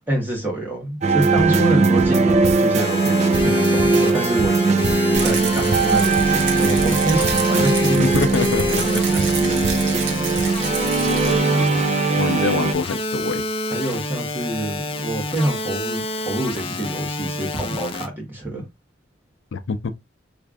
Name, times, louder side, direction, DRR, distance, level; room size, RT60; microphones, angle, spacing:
voice 1, 0.1-4.8 5.1-8.1 9.1-9.2 9.7-9.8 10.8-10.9 13.7-18.6, right 1 dB, 10° right, 1.3 m, -26 dB
sound 1, 1.0-12.7, right 4 dB, 35° right, 0.4 m, -19 dB
voice 2, 1.4-1.8 8.0-9.0 11.1-11.7 12.2-13.4 19.5-19.9, left 4 dB, 80° left, 0.4 m, -26 dB
sound 2, 2.8-18.1, left 2 dB, 30° left, 0.5 m, -28 dB
Rattle, 5.1-11.4, right 5 dB, 85° right, 0.9 m, -30 dB
3.4 x 2.5 x 3.4 m
head